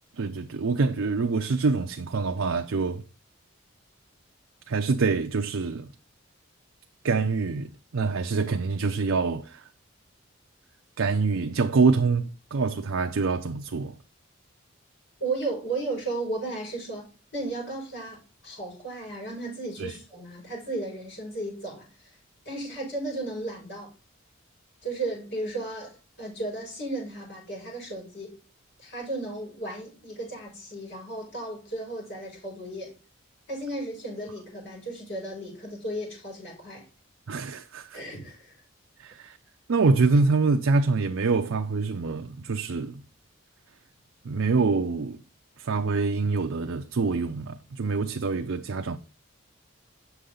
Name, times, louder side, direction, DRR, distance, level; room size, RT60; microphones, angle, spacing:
voice 1, 0.1-3.0 4.7-5.9 7.0-9.7 11.0-14.0 19.8-19.9 37.3-38.0 39.0-39.4 39.7-43.0 44.2-45.2 45.6-49.0, right 4 dB, 75° right, 0.5 m, -25 dB
voice 2, 15.2-17.0 17.3-22.2 22.4-23.9 24.8-28.4 28.8-32.9 33.5-36.8 37.9-38.5, right 2 dB, 55° left, 5.4 m, -34 dB
8.1 x 6.4 x 3.8 m
head